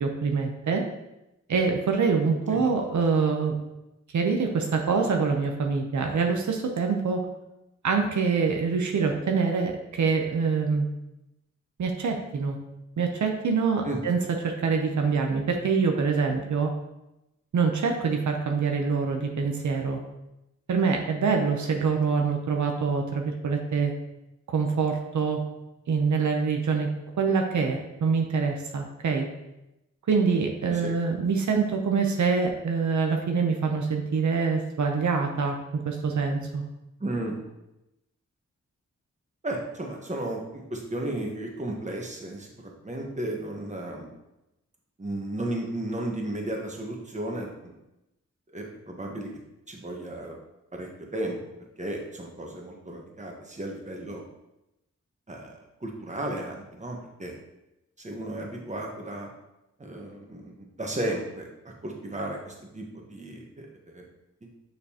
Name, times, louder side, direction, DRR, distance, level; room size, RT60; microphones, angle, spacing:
voice 1, 0.0-0.8 1.5-3.6 4.1-7.2 7.8-10.9 11.8-12.6 13.0-14.2 14.4-16.7 17.5-20.0 20.7-23.9 24.5-25.4 25.9-26.9 27.2-29.3 30.1-36.6, right 5 dB, 85° right, 2 dB, 0.8 m, -25 dB
voice 2, 37.0-37.4 39.4-44.1 45.0-47.7 48.5-49.3 49.7-50.3 50.7-51.4 51.8-54.2 55.3-57.3 58.0-59.3 59.8-64.0 64.4-64.5, right 1 dB, 25° right, 0 dB, 1.2 m, -34 dB
6.7 x 5.2 x 2.9 m, 0.93 s
wide cardioid pair, 75°, 29 cm